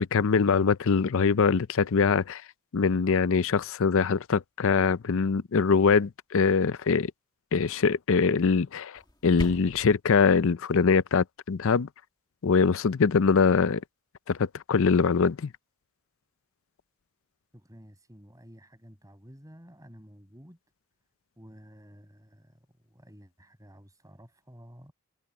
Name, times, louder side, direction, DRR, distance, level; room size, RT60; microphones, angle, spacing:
voice 1, 0.0-2.4 2.7-7.1 7.5-11.9 12.4-13.8 14.3-15.5, left 5 dB, 60° left, 0.5 m, -23 dB
sound 1, 8.9-10.0, left 1 dB, 20° left, 2.1 m, -38 dB
voice 2, 17.5-20.6 21.4-24.9, equal, 15° right, 6.5 m, -52 dB
head